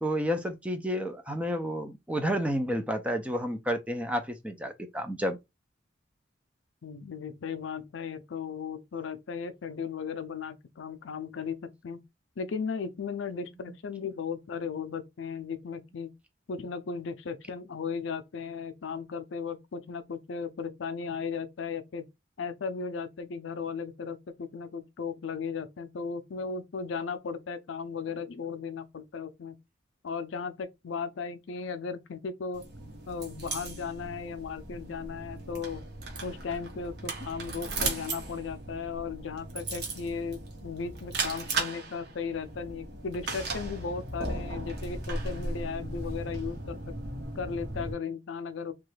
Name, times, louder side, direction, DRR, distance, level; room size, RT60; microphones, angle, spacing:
voice 1, 0.0-5.4, equal, 5° right, 0.4 m, -30 dB
voice 2, 6.8-12.0 12.4-16.1 16.5-22.1 22.4-29.6 30.0-32.6 33.1-35.8 36.2-46.8 47.4-48.7, left 5 dB, 75° left, 0.5 m, -36 dB
sound 1, 32.5-47.9, right 2 dB, 55° right, 1.0 m, -37 dB
3.0 x 2.3 x 3.2 m
head